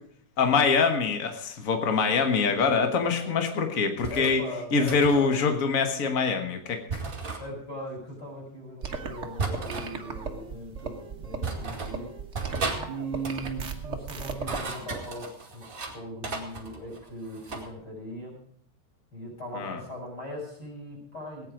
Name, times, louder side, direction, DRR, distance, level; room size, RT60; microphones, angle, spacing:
voice 1, 0.4-4.4 4.7-7.0 19.5-19.8, left 5 dB, 70° left, 6 dB, 0.7 m, -24 dB
sound 1, 4.0-4.4 4.9-5.2 6.9-7.4 9.4-9.9 10.8-10.9 11.4-12.0 12.3-12.8 13.1-13.6 14.2-15.9 16.2-17.7, right 4 dB, 30° right, 2.3 m, -34 dB
voice 2, 4.1-5.4 7.4-12.2 12.9-18.4 19.1-21.5, equal, 30° left, -2 dB, 7.1 m, -39 dB
sound 2, 8.8-14.6, right 5 dB, 85° right, 0.6 m, -37 dB
19.0 x 9.5 x 5.1 m, 0.65 s
omnidirectional pair, 3.6 m